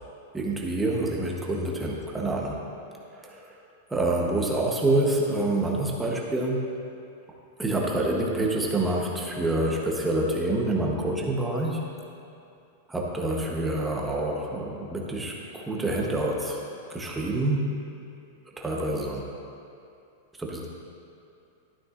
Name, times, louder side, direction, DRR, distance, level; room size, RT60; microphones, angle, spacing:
voice 1, 0.3-2.6 3.1-3.5 3.9-6.6 7.6-11.9 12.9-16.6 16.9-17.7 18.6-19.3 20.4-20.7, right 2 dB, 5° right, -2 dB, 0.9 m, -27 dB
12.5 x 9.2 x 2.5 m, 2.5 s
supercardioid pair, 165°, 0 cm